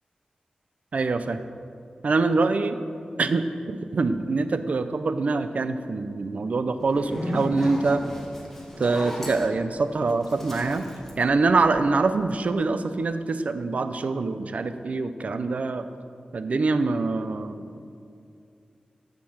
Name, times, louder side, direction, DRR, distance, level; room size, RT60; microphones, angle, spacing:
voice 1, 0.9-1.4 2.0-2.8 3.2-8.0 8.8-10.9 11.2-15.9 16.3-17.7, right 3 dB, 65° right, 10 dB, 0.6 m, -24 dB
Zipper (clothing), 6.8-12.1, left 1 dB, 10° left, 1.8 m, -35 dB
14.5 x 6.0 x 6.2 m, 2.5 s
wide cardioid pair, 105°, 3 cm